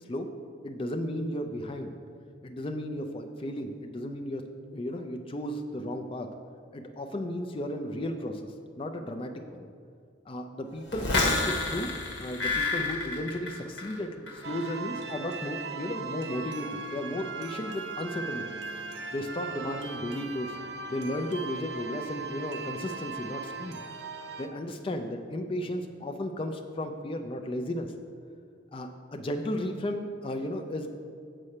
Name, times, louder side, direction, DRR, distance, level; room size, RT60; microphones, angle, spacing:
voice 1, 0.6-1.9 2.4-4.4 4.7-6.3 6.7-9.7 10.3-11.9 12.2-18.5 19.1-20.6 20.9-23.8 24.4-27.9 28.7-30.9, left 1 dB, 30° left, 4 dB, 0.4 m, -34 dB
sound 1, 10.9-14.0 14.3-14.7, left 3 dB, 70° left, 1.3 m, -29 dB
sound 2, 14.4-24.5, right 4 dB, 70° right, 0.6 m, -38 dB
7.5 x 4.2 x 6.5 m, 2.3 s
head